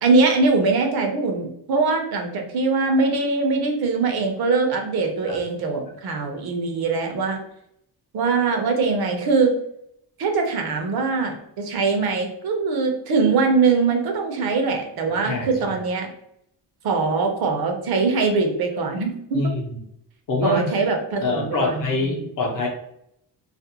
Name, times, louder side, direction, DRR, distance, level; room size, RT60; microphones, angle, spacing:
voice 1, 0.0-7.4 8.1-9.5 10.2-16.1 16.8-19.4 20.4-22.3, right 4 dB, 65° right, 3 dB, 0.6 m, -22 dB
voice 2, 15.2-15.8 19.3-19.8 20.3-20.9 21.2-22.7, left 2 dB, 50° left, 0 dB, 0.6 m, -25 dB
2.4 x 2.1 x 2.8 m, 0.74 s
wide cardioid pair, 175°, 41 cm